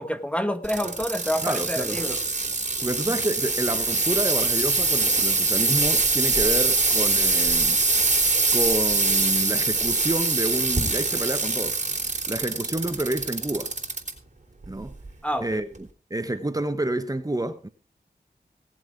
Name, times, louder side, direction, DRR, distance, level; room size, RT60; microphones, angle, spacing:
voice 1, 0.0-2.2 15.2-15.6, equal, 5° left, 1.3 m, -28 dB
sound 1, 0.6-14.1 14.6-15.1 15.7-15.8, right 3 dB, 45° right, 3.8 m, -23 dB
voice 2, 1.4-2.0 2.8-7.8 8.5-11.8 12.3-13.7 14.7-15.0 15.4-15.7 16.1-17.7, right 1 dB, 20° right, 1.3 m, -29 dB
18.0 x 7.6 x 4.8 m
cardioid pair, 50°, 17 cm